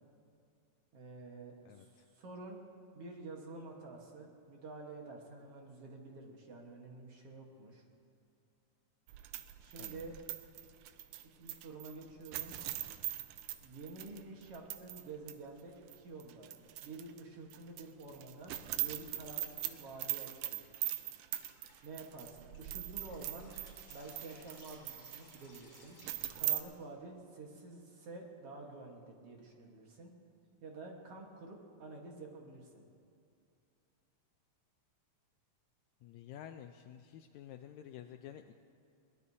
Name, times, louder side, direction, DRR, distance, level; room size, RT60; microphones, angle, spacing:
voice 1, 0.9-7.8 9.6-10.2 11.4-12.6 13.6-16.5 16.8-20.6 21.8-23.5 23.9-26.0 26.3-30.1 30.6-32.8, right 3 dB, 55° right, 0 dB, 2.2 m, -49 dB
voice 2, 1.6-2.1 9.8-10.1 36.0-38.5, left 10 dB, 80° left, 7 dB, 1.7 m, -51 dB
sound 1, 9.1-15.0 15.3-15.4 15.9-17.2 17.5-26.6, right 13 dB, 85° right, 2.2 m, -41 dB
Drip, 21.3-26.9, left 2 dB, 40° left, 4.7 m, -61 dB
22.0 x 18.5 x 2.8 m, 2.4 s
omnidirectional pair, 3.6 m